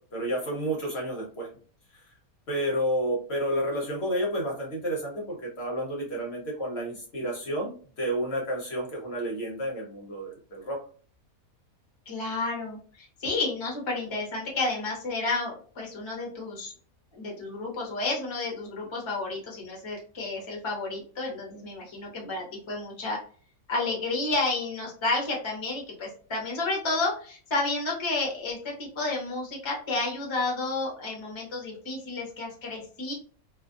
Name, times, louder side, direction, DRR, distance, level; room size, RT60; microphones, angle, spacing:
voice 1, 0.1-1.5 1.9-2.1 2.5-10.8, right 1 dB, 55° left, -2 dB, 0.9 m, -30 dB
voice 2, 12.1-16.7 17.1-23.2 23.7-33.1, left 3 dB, 25° left, -2 dB, 0.6 m, -31 dB
2.5 x 2.4 x 2.3 m, 0.42 s
omnidirectional pair, 1.5 m